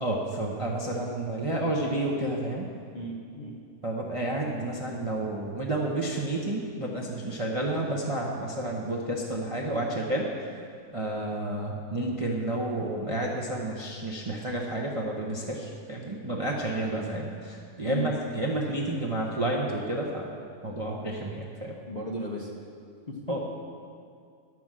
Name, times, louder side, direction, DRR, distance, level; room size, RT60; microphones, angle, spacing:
voice 1, 0.0-2.7 3.8-10.3 10.9-20.3 20.6-21.8 23.3-23.4, right 1 dB, 30° right, -2 dB, 0.7 m, -30 dB
voice 2, 2.9-3.6 17.9-18.1 21.9-22.5 23.1-23.4, equal, 30° left, -3 dB, 0.9 m, -35 dB
11.0 x 6.0 x 7.5 m, 2.3 s
omnidirectional pair, 1.7 m